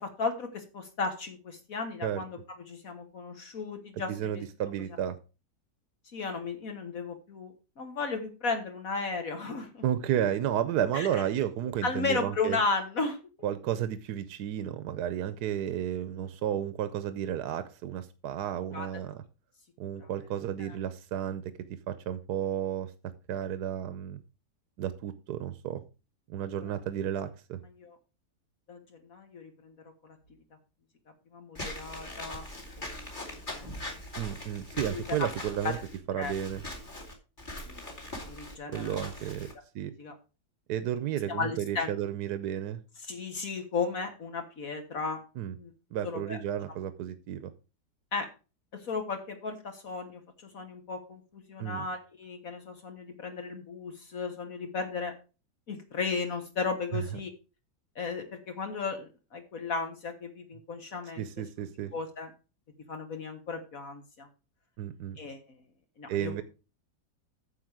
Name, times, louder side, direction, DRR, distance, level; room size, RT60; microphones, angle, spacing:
voice 1, 0.0-2.4 2.7-4.4 6.1-9.8 10.9-11.2 11.8-13.2 18.7-18.9 20.0-20.1 20.6-20.8 27.8-28.0 28.7-29.7 30.0-30.2 31.3-32.4 32.8-33.0 33.5-33.7 34.7-35.3 35.6-35.8 36.2-36.3 37.7-37.8 38.2-39.0 40.0-40.1 41.3-41.9 43.0-45.2 45.6-45.7 46.0-46.4 48.1-48.3 48.7-55.1 55.7-57.3 58.0-61.3 61.9-62.3 62.9-64.3 65.2-65.7 66.0-66.4, left 4 dB, 60° left, 5 dB, 1.7 m, -35 dB
voice 2, 4.1-5.2 9.8-12.6 13.4-19.2 19.8-21.4 21.9-22.9 23.3-24.2 24.8-25.8 26.3-27.6 34.2-35.8 36.1-36.6 38.7-39.5 39.7-39.9 40.7-42.8 45.4-45.5 45.9-47.5 51.6-51.9 56.9-57.0 61.2-61.9 64.8-65.2 66.1-66.4, right 10 dB, 80° right, 12 dB, 1.3 m, -32 dB
Walk footsteps / Squeak, 31.6-39.5, left 1 dB, 30° left, 2.7 m, -41 dB
9.8 x 6.9 x 4.8 m, 0.32 s
omnidirectional pair, 1.7 m